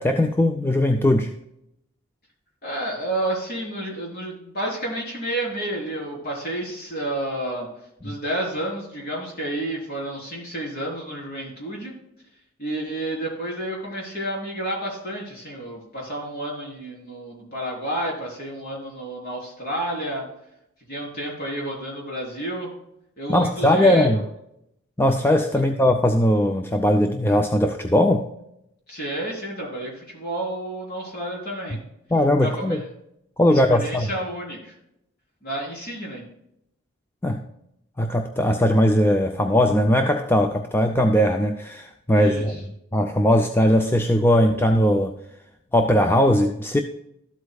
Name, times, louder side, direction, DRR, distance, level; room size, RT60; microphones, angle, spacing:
voice 1, 0.0-1.4 23.3-24.2 25.0-28.3 32.1-32.8 33.4-34.1 37.2-37.4 38.0-42.6 42.9-45.1 45.7-46.8, left 1 dB, 10° left, 5 dB, 0.4 m, -19 dB
voice 2, 2.6-7.7 8.0-11.9 12.6-20.2 20.9-22.7 23.2-24.2 25.5-25.6 28.9-31.8 32.4-32.9 33.5-34.8 35.4-36.2 42.1-42.6, right 1 dB, 45° left, -3 dB, 3.8 m, -30 dB
13.0 x 8.0 x 2.3 m, 0.79 s
head